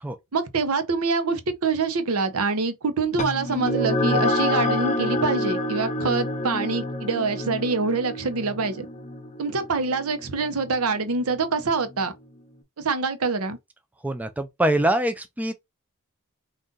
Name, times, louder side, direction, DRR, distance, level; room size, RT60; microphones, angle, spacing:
voice 1, 0.3-8.9 9.4-12.1 12.8-13.6, right 4 dB, 80° right, 0.8 m, -25 dB
sound 1, 3.2-12.0, left 1 dB, 35° left, 0.7 m, -28 dB
voice 2, 14.0-15.5, right 1 dB, 5° right, 0.3 m, -24 dB
3.9 x 2.5 x 3.7 m
head